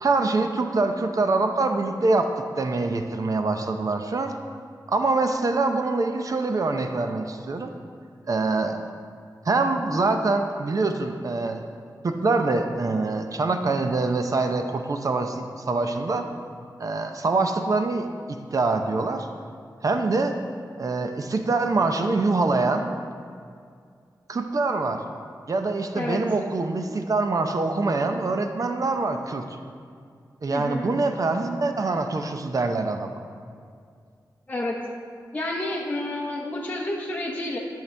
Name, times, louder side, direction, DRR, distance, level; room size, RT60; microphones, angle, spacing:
voice 1, 0.0-4.3 4.9-7.7 8.3-8.8 9.4-11.6 12.0-16.3 16.8-19.3 19.8-20.4 20.8-22.9 24.3-25.0 25.5-29.4 30.4-33.1, right 3 dB, 50° right, 5 dB, 0.6 m, -24 dB
voice 2, 30.5-30.9 34.5-34.8 35.3-37.6, left 1 dB, 20° left, -3 dB, 0.8 m, -29 dB
11.0 x 6.6 x 3.3 m, 2.2 s
wide cardioid pair, 105°, 7 cm